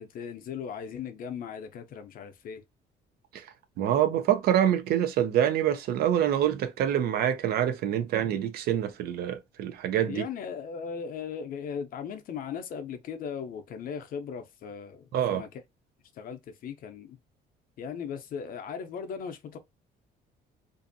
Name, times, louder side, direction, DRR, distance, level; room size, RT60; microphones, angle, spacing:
voice 1, 0.0-2.6 10.1-15.5 16.1-17.2 17.8-19.6, left 7 dB, 55° left, 0.6 m, -38 dB
voice 2, 3.8-10.2 15.1-15.4, right 10 dB, 65° right, 0.5 m, -26 dB
2.6 x 2.4 x 2.6 m
cardioid pair, 110°, 17 cm